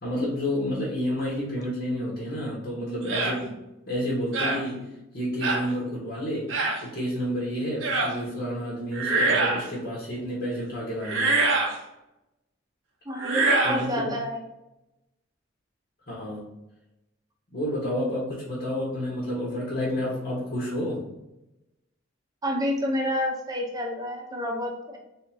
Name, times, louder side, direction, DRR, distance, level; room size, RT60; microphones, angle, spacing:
voice 1, 0.0-3.6 3.9-4.8 5.1-6.5 6.8-11.3 13.6-14.1 16.1-16.5 17.5-21.0, equal, 55° left, -7 dB, 1.4 m, -30 dB
sound 1, 3.1-3.4 4.3-4.6 5.4-5.6 6.5-6.8 7.8-8.1 8.9-9.7 11.0-11.7 13.2-13.8, right 3 dB, 80° right, 0.8 m, -24 dB
voice 2, 13.1-14.4 22.4-25.0, equal, 20° right, 0 dB, 0.8 m, -29 dB
3.8 x 3.6 x 2.8 m, 0.92 s
head